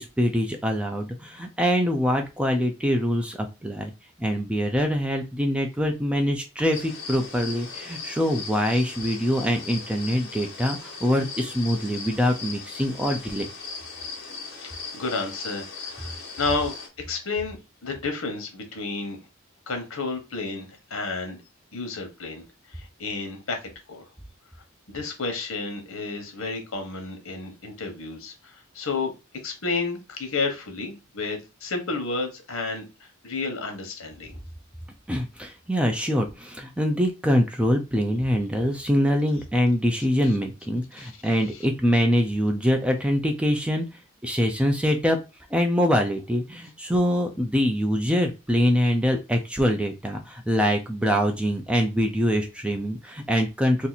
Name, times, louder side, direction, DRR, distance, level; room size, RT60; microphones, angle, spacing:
voice 1, 0.0-3.9 4.2-13.5 35.1-43.9 44.2-45.2 45.5-53.9, equal, 5° right, 3 dB, 0.4 m, -24 dB
sound 1, 6.7-16.9, left 4 dB, 50° left, 1.3 m, -38 dB
voice 2, 14.6-16.7 17.1-17.6 17.8-19.2 19.7-21.4 21.7-22.4 22.7-24.0 24.9-29.1 29.4-34.3 41.0-41.1 41.5-41.7, left 3 dB, 80° left, 4 dB, 1.1 m, -31 dB
2.8 x 2.5 x 4.0 m, 0.27 s
head